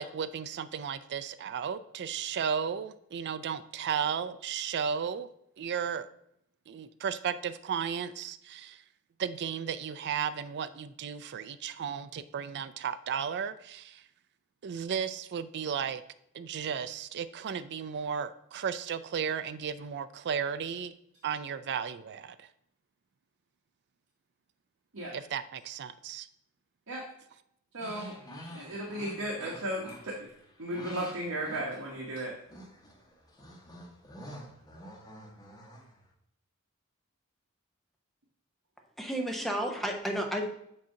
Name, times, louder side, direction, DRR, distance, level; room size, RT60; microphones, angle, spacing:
voice 1, 0.0-5.3 5.6-6.1 6.7-8.8 9.2-14.0 14.6-16.0 16.3-20.9 21.2-22.5 25.1-26.3, right 7 dB, 55° right, 13 dB, 0.4 m, -34 dB
voice 2, 27.7-28.2 28.5-30.3 30.6-32.3, right 1 dB, 70° right, -3 dB, 1.2 m, -35 dB
sound 1, 27.8-32.2 32.5-36.1, equal, 20° left, 1.2 m, -48 dB
voice 3, 39.0-40.5, equal, ahead, 2 dB, 0.8 m, -32 dB
7.6 x 2.8 x 5.7 m, 0.76 s
head